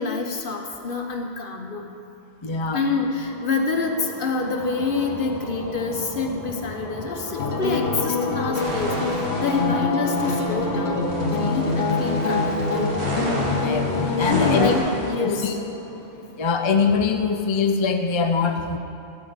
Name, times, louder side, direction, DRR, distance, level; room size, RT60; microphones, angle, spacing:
voice 1, 0.0-1.9 2.7-12.9 14.2-15.6, left 4 dB, 55° left, 3 dB, 1.1 m, -27 dB
voice 2, 2.4-2.8 9.5-9.8 13.6-14.7 15.2-15.6 16.4-18.8, left 5 dB, 35° left, 5 dB, 0.5 m, -23 dB
sound 1, 2.5-17.0, equal, 20° left, 1.2 m, -35 dB
sound 2, 7.4-14.8, left 3 dB, 75° left, 1.2 m, -25 dB
sound 3, 8.5-9.7 10.1-15.1, right 1 dB, 80° right, 2.5 m, -31 dB
13.0 x 4.9 x 8.0 m, 2.7 s
omnidirectional pair, 1.1 m